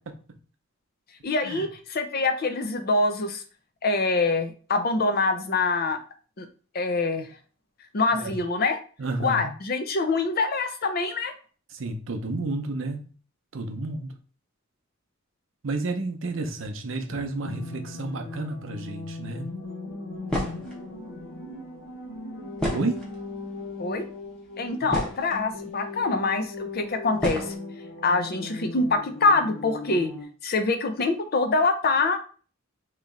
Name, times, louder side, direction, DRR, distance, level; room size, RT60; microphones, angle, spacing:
voice 1, 0.1-0.4 1.4-1.7 8.1-8.3 9.0-9.5 11.7-13.1 13.5-14.1 15.6-19.5 22.7-23.0, right 2 dB, 70° right, 0.6 m, -31 dB
voice 2, 1.2-3.4 3.8-6.0 6.4-6.5 6.7-7.3 7.9-8.8 9.2-11.3 23.8-24.1 24.6-27.5 28.0-30.1 30.4-32.2, left 3 dB, 45° left, 0.5 m, -25 dB
sound 1, 16.8-30.2, left 3 dB, 70° left, 0.9 m, -39 dB
sound 2, 20.3-20.8 22.6-23.3 24.1-24.2 24.6-25.4 26.3-26.4 27.2-27.5, equal, 5° left, 1.0 m, -30 dB
3.1 x 2.9 x 3.7 m
head